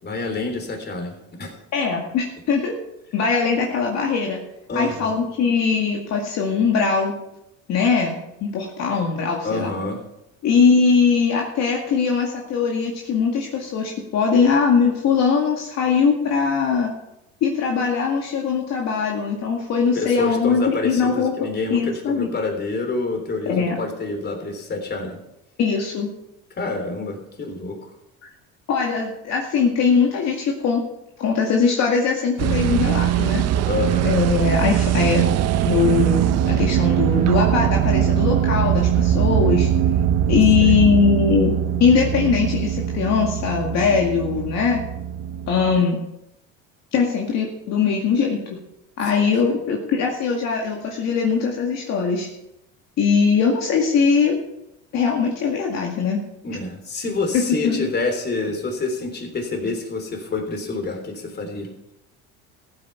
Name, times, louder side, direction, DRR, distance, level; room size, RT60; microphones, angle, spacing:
voice 1, 0.0-1.5 4.7-5.1 9.4-10.0 19.9-25.2 26.6-27.9 33.6-34.1 40.6-40.8 49.2-49.6 56.4-61.7, left 3 dB, 30° left, 4 dB, 3.5 m, -27 dB
voice 2, 1.7-2.7 3.1-4.4 4.7-7.1 7.7-9.7 10.4-16.9 17.4-21.3 21.7-22.3 23.5-23.8 25.6-26.1 28.7-30.8 31.2-33.4 34.0-35.3 35.6-39.7 40.3-44.8 45.5-46.0 46.9-48.6 49.0-52.3 53.0-54.4 54.9-56.2 57.3-57.9, left 5 dB, 55° left, 0 dB, 2.2 m, -21 dB
sound 1, 32.4-45.8, right 10 dB, 55° right, 0.7 m, -21 dB
14.5 x 8.8 x 5.8 m, 0.85 s
cardioid pair, 110°, 31 cm